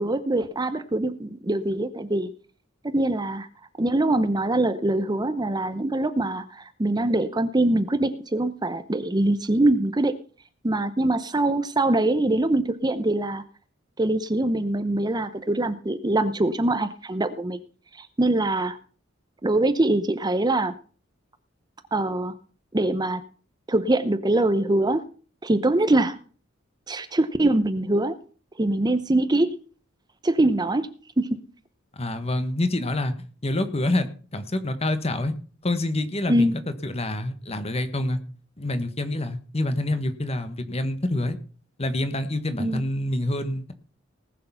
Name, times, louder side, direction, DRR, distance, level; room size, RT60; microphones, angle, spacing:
voice 1, 0.0-2.3 2.8-3.5 3.8-10.1 10.6-13.4 14.0-17.6 18.0-18.8 19.4-20.7 21.9-22.3 22.7-23.2 23.7-25.0 25.4-26.2 26.9-28.2 28.6-29.5 30.2-30.9 31.2-31.4 36.3-36.6 42.6-42.8, right 2 dB, 20° right, 12 dB, 0.7 m, -23 dB
voice 2, 31.9-33.1 33.4-35.3 35.6-38.2 38.6-41.4 41.8-43.7, left 1 dB, 30° left, 10 dB, 1.3 m, -27 dB
19.0 x 6.6 x 5.6 m, 0.40 s
head